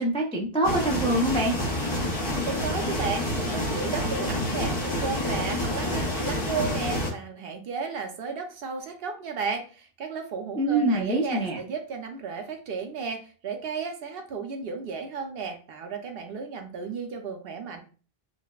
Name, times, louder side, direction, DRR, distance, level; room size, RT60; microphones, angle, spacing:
voice 1, 0.0-1.5 10.6-11.6, right 1 dB, 10° left, -1 dB, 0.3 m, -25 dB
sound 1, 0.6-7.1, left 1 dB, 45° left, 0.9 m, -28 dB
voice 2, 2.3-17.8, right 5 dB, 70° right, 5 dB, 0.8 m, -34 dB
3.9 x 2.1 x 2.3 m, 0.36 s
omnidirectional pair, 1.0 m